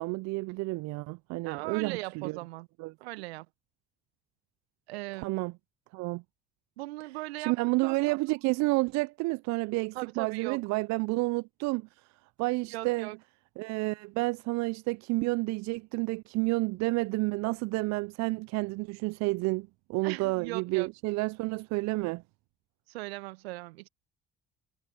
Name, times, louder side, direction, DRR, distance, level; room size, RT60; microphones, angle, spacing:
voice 1, 0.0-2.4 2.8-2.9 5.2-5.5 5.9-6.2 7.4-11.9 12.4-13.1 13.6-22.2, right 24 dB, 60° right, 0.6 m, -30 dB
voice 2, 1.4-2.7 3.0-3.5 4.9-5.4 6.8-7.5 7.8-8.2 9.9-10.6 12.7-13.2 20.0-20.9 22.9-23.9, right 21 dB, 75° right, 1.4 m, -39 dB
figure-of-eight pair, 50°, 31 cm